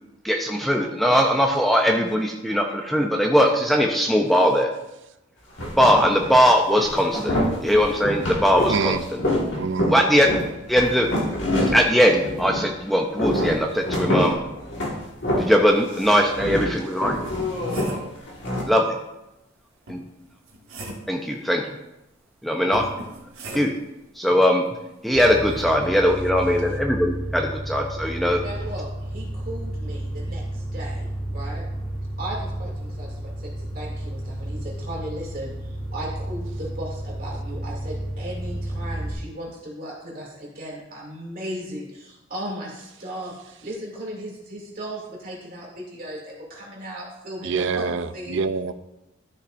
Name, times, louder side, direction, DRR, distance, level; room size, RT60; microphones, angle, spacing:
voice 1, 0.2-4.7 5.8-9.2 9.9-10.3 10.7-11.1 11.7-14.4 15.4-17.2 18.7-19.0 19.9-20.0 21.1-21.6 22.4-22.9 23.5-23.7 24.1-28.4, equal, ahead, 2 dB, 0.5 m, -20 dB
sound 1, 5.6-6.4 6.7-12.7 13.0-15.7 15.9-18.6, left 1 dB, 60° left, 1.7 m, -26 dB
voice 2, 8.7-9.0 9.6-9.9 47.4-48.7, right 5 dB, 60° right, 12 dB, 0.4 m, -25 dB
sound 2, 15.9-16.0 16.5-18.2 19.9-21.2 22.7-23.9 25.5-25.7, right 1 dB, 80° right, 1.6 m, -38 dB
sound 3, 25.2-39.1, right 1 dB, 30° left, 2.5 m, -32 dB
voice 3, 28.4-31.7 32.2-48.4, right 1 dB, 40° right, -3 dB, 2.5 m, -36 dB
12.5 x 6.4 x 2.5 m, 0.93 s
head